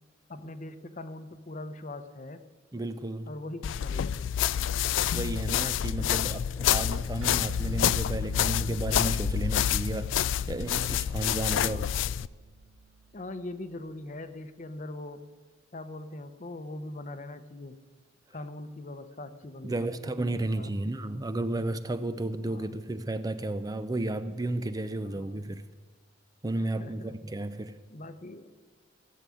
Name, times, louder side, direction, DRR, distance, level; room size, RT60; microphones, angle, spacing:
voice 1, 0.3-2.4 3.3-4.3 6.0-6.3 11.4-11.9 13.1-15.3 15.7-17.8 18.3-20.7 22.4-22.7 25.0-25.4 26.5-27.3 27.9-28.5, left 2 dB, 40° left, 0.8 m, -42 dB
voice 2, 2.7-3.3 5.1-11.8 19.6-25.6 26.4-27.7, right 2 dB, 20° right, 0.5 m, -33 dB
sound 1, 3.6-12.3, left 10 dB, 75° left, 0.3 m, -28 dB
sound 2, 7.2-14.0, right 6 dB, 90° right, 0.5 m, -48 dB
16.0 x 7.7 x 8.4 m
head